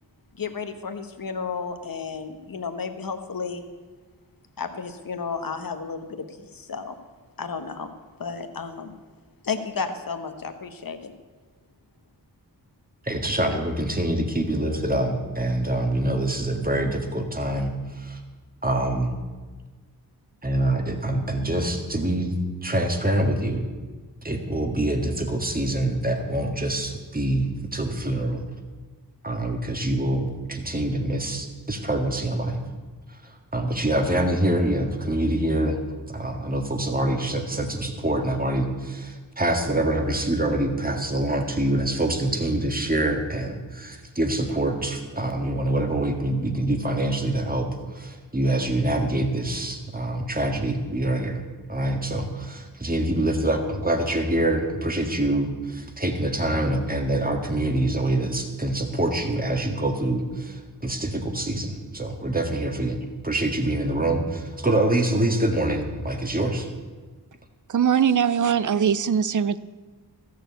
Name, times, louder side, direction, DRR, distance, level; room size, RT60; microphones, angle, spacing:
voice 1, 0.3-3.7 4.6-6.9 7.4-7.9 8.2-8.9 9.4-11.1, left 5 dB, 55° left, 7 dB, 1.2 m, -32 dB
voice 2, 13.1-18.2 18.6-19.1 20.4-22.3 22.6-23.7 24.2-28.4 29.2-32.6 33.5-35.8 36.1-47.7 47.9-51.4 51.7-63.0 63.2-66.7, right 1 dB, 20° right, 4 dB, 1.9 m, -25 dB
voice 3, 67.7-69.6, right 8 dB, 50° right, 17 dB, 0.6 m, -21 dB
14.0 x 6.7 x 8.1 m, 1.3 s
cardioid pair, 55°, 40 cm